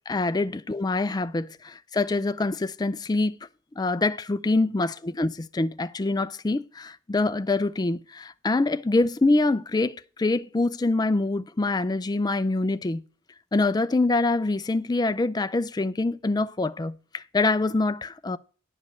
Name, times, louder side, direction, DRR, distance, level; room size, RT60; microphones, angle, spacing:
voice 1, 0.1-3.4 3.8-13.0 13.5-18.4, left 2 dB, 20° left, 0.4 m, -25 dB
10.5 x 5.1 x 7.7 m
head